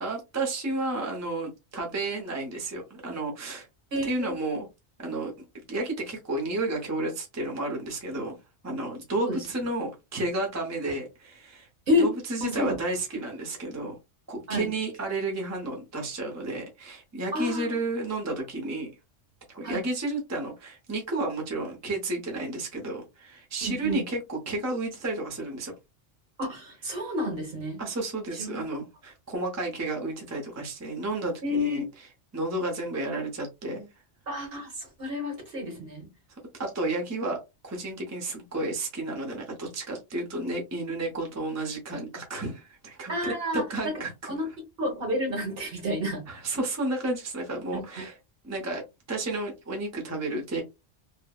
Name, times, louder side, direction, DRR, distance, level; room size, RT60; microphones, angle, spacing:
voice 1, 0.0-3.7 4.0-4.7 5.0-8.3 8.6-11.7 12.0-13.9 14.3-18.9 19.5-25.7 27.8-33.9 36.6-37.4 37.6-44.3 46.3-48.2 48.4-48.8 49.1-50.6, right 2 dB, 20° right, 0.6 m, -32 dB
voice 2, 3.9-4.3 9.2-9.4 11.9-12.1 12.4-12.8 14.5-14.7 17.3-17.7 19.6-19.8 23.6-24.0 26.4-27.8 28.4-28.6 31.4-31.8 34.3-36.0 43.1-43.9 44.2-44.5 44.8-46.2 47.7-48.0, left 1 dB, 55° right, 1.2 m, -29 dB
3.2 x 2.0 x 2.2 m
omnidirectional pair, 1.2 m